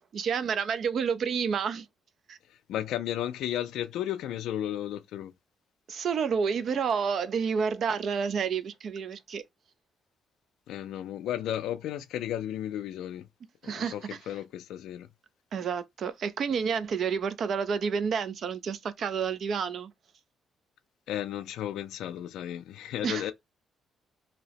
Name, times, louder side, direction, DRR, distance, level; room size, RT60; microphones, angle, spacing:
voice 1, 0.1-1.9 2.3-2.4 5.9-9.4 13.6-14.2 15.5-19.9 23.0-23.3, right 6 dB, 60° right, 0.4 m, -29 dB
voice 2, 2.7-5.3 10.7-13.3 13.6-15.1 21.1-23.3, left 11 dB, 85° left, 0.3 m, -34 dB
2.8 x 2.0 x 2.8 m
cardioid pair, 90°, 0 cm